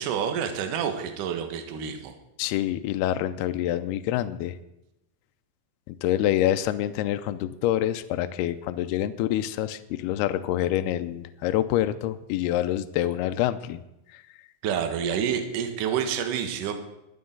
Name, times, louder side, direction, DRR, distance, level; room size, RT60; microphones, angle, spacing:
voice 1, 0.0-2.1 14.6-16.8, right 8 dB, 60° right, 6 dB, 2.3 m, -28 dB
voice 2, 2.4-4.6 5.9-13.8 14.1-14.2, left 12 dB, 90° left, 11 dB, 2.3 m, -26 dB
23.0 x 8.6 x 3.9 m, 0.88 s
omnidirectional pair, 5.2 m